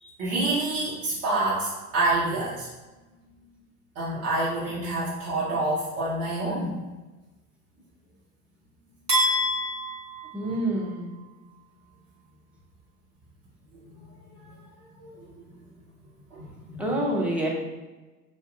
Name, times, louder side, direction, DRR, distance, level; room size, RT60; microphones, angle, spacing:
voice 1, 0.0-2.7 3.9-6.8 10.4-10.5 14.4-14.5 15.0-15.2 16.3-16.4 16.7-16.9, right 2 dB, 45° right, -8 dB, 1.1 m, -27 dB
sound 1, 9.1-11.2, equal, 80° right, 1.4 m, -27 dB
voice 2, 10.3-11.1 16.8-17.5, right 1 dB, 5° right, -3 dB, 0.5 m, -27 dB
5.1 x 2.3 x 2.6 m, 1.2 s
figure-of-eight pair, 75°, 47 cm